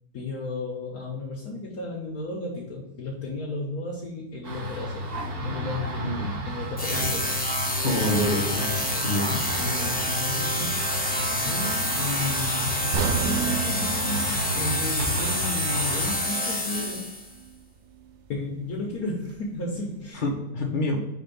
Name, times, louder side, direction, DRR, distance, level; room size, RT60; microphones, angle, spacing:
voice 1, 0.1-5.1 5.4-6.1 6.4-7.4 7.9-8.2 9.5-17.1 18.3-20.2 20.9-21.1, left 2 dB, 75° left, -3 dB, 1.5 m, -33 dB
sound 1, 4.4-16.1, equal, 85° right, 1.8 m, -33 dB
sound 2, 6.8-17.3, left 1 dB, 10° left, 0.6 m, -28 dB
voice 2, 7.8-8.8 9.0-9.4 20.2-21.0, left 1 dB, 35° left, 1 dB, 1.1 m, -26 dB
sound 3, 12.9-17.0 17.3-17.5 18.1-18.2, right 8 dB, 65° right, 0.7 m, -32 dB
5.4 x 3.4 x 5.3 m, 0.99 s
omnidirectional pair, 1.6 m